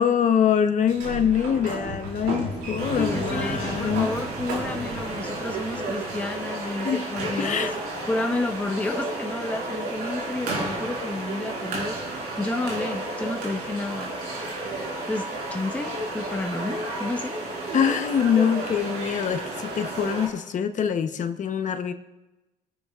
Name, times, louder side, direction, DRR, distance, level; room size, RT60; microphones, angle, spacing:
voice 1, 0.0-4.2 6.8-7.1 7.4-7.7 17.7-21.9, left 8 dB, 45° left, 8 dB, 1.0 m, -24 dB
Sliding door, 0.8-6.5, right 2 dB, 80° right, 3.0 m, -34 dB
voice 2, 2.6-14.4 15.1-17.4, left 2 dB, 10° left, 5 dB, 0.7 m, -31 dB
sound 1, 2.8-20.3, right 2 dB, 65° right, 4.1 m, -32 dB
26.0 x 10.0 x 2.5 m, 1.0 s
cardioid pair, 110°, 17 cm